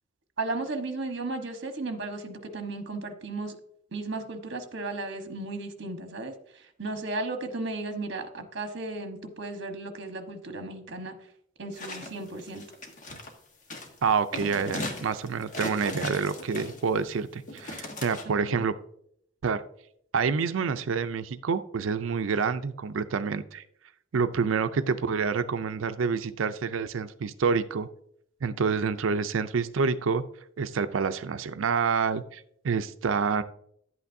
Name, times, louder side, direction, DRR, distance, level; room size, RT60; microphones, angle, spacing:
voice 1, 0.4-3.6 3.9-11.1 11.6-12.6 18.2-18.7, right 2 dB, 60° right, 6 dB, 1.2 m, -35 dB
sound 1, 11.7-13.3 13.7-13.9 14.3-17.0 17.5-18.2, left 1 dB, 40° left, 1.3 m, -37 dB
voice 2, 14.0-18.8 19.4-19.6 20.1-23.6 24.1-27.9 28.4-30.2 30.6-33.4, right 5 dB, 90° right, 11 dB, 0.5 m, -27 dB
11.0 x 8.4 x 2.6 m, 0.69 s
head